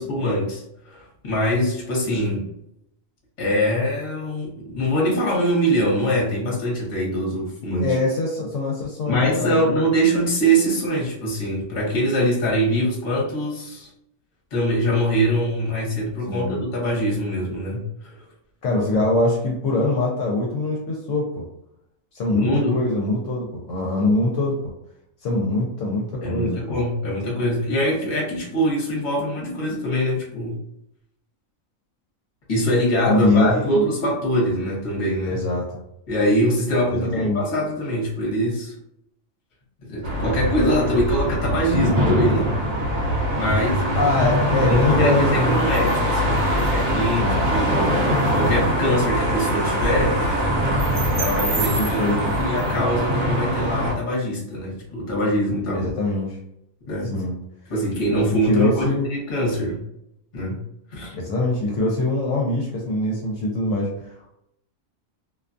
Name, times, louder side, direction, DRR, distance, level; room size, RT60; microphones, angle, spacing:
voice 1, 0.0-2.5 3.4-7.9 9.0-13.9 14.5-18.1 22.3-22.8 26.2-30.6 32.5-35.4 36.1-38.7 39.9-42.6 43.3-44.3 44.7-48.0 48.3-50.2 51.1-52.1 52.4-55.8 56.9-57.2 57.7-59.8 60.3-60.6 60.9-61.2, equal, 40° left, -3 dB, 0.9 m, -23 dB
voice 2, 7.8-9.8 16.3-16.6 18.6-21.4 22.1-24.7 25.2-26.8 33.1-33.8 35.3-35.7 36.9-37.4 44.0-45.7 47.2-47.4 51.8-52.3 55.7-56.4 57.1-57.3 58.5-59.1 61.1-64.3, left 2 dB, 70° left, -2 dB, 0.9 m, -23 dB
sound 1, 40.0-53.9, equal, 60° right, 1.0 m, -22 dB
2.4 x 2.2 x 2.5 m, 0.78 s
omnidirectional pair, 1.4 m